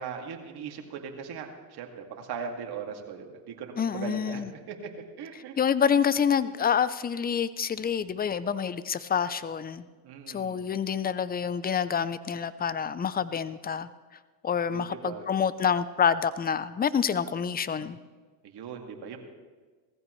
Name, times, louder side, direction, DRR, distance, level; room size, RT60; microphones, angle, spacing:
voice 1, 0.0-4.8 5.2-5.6 10.0-10.6 14.7-15.3 18.4-19.2, right 6 dB, 50° right, 2 dB, 2.4 m, -39 dB
voice 2, 3.8-4.5 5.6-9.9 10.3-13.9 14.4-18.0, left 7 dB, 20° left, 15 dB, 0.6 m, -27 dB
19.0 x 15.0 x 3.2 m, 1.4 s
hypercardioid pair, 85°, 50 cm